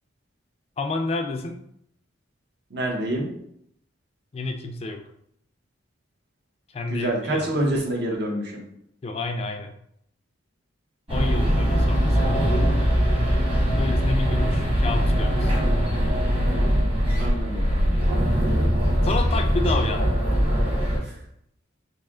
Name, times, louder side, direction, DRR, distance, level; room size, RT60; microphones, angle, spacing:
voice 1, 0.8-1.6 4.3-5.0 6.7-7.5 9.0-9.7 11.1-12.5 13.7-15.5 19.0-20.2, left 3 dB, 30° left, 5 dB, 0.3 m, -29 dB
voice 2, 2.7-3.3 6.9-8.6 17.2-17.6 21.0-21.1, right 1 dB, 60° right, -1 dB, 0.9 m, -26 dB
sound 1, 11.1-21.0, equal, 30° right, 1.2 m, -21 dB
3.2 x 2.7 x 3.6 m, 0.72 s
head